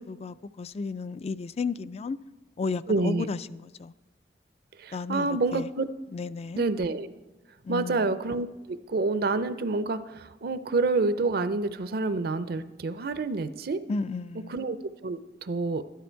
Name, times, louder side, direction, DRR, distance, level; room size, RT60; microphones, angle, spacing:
voice 1, 0.0-2.2 2.6-3.9 4.9-5.7 6.1-6.6 7.6-8.1 13.9-14.6, left 4 dB, 35° left, 0.3 m, -33 dB
voice 2, 2.9-3.3 4.8-5.9 6.5-7.1 7.7-13.8 14.5-14.8 15.0-15.8, right 3 dB, 55° right, 0.5 m, -28 dB
12.5 x 11.5 x 4.5 m
head